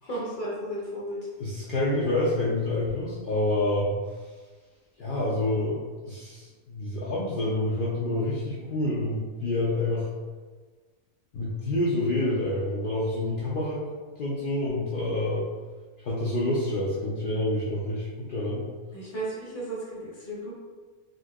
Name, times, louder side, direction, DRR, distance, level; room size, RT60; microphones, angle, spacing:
voice 1, 0.0-1.3 18.9-20.5, right 1 dB, 45° left, -6 dB, 0.7 m, -34 dB
voice 2, 1.4-3.9 5.0-10.1 11.3-13.9 14.2-15.5 16.0-18.6, left 1 dB, 75° left, -7 dB, 0.4 m, -27 dB
3.8 x 2.6 x 2.3 m, 1.4 s
omnidirectional pair, 1.5 m